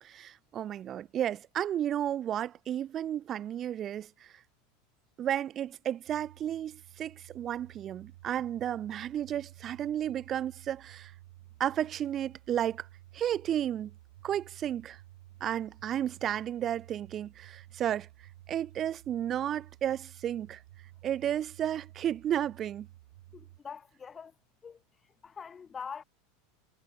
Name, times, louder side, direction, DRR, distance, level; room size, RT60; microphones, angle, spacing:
voice 1, 0.0-4.3 5.2-11.1 11.6-12.9 13.1-13.9 14.2-15.0 15.4-18.1 18.5-20.6 21.0-22.9, right 10 dB, 35° right, 0.8 m, -33 dB
sound 1, 6.1-23.6, right 16 dB, 70° right, 2.5 m, -54 dB
voice 2, 23.3-24.3 24.6-26.0, left 6 dB, 25° left, 0.8 m, -44 dB
hypercardioid pair, 90°, 0 cm